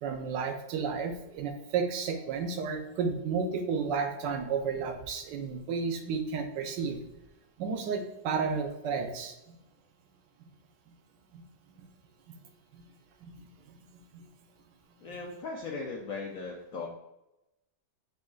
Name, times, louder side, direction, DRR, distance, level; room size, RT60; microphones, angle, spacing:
voice 1, 0.0-7.0 7.6-9.4 11.3-11.4 11.8-11.9 12.7-12.8 13.2-13.4 14.1-14.3, right 5 dB, 75° right, 6 dB, 1.2 m, -32 dB
voice 2, 15.0-16.9, left 4 dB, 75° left, 0 dB, 0.8 m, -38 dB
5.1 x 3.7 x 2.3 m, 0.92 s
omnidirectional pair, 2.0 m